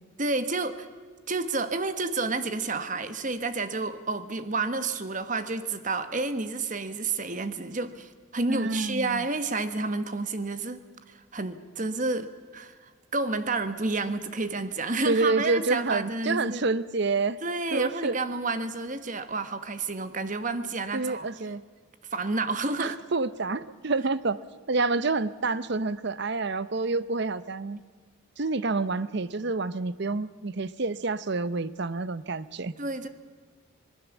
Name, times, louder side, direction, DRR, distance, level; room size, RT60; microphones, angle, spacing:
voice 1, 0.2-0.9 1.3-12.8 13.1-16.6 17.4-21.3 22.1-23.0 32.8-33.1, right 3 dB, 35° right, 10 dB, 1.3 m, -30 dB
voice 2, 8.5-9.2 15.0-17.4 17.7-18.2 20.9-21.6 22.8-24.4 24.7-27.8 28.4-32.7, right 3 dB, 55° right, 16 dB, 0.7 m, -28 dB
26.0 x 19.0 x 7.2 m, 1.6 s
head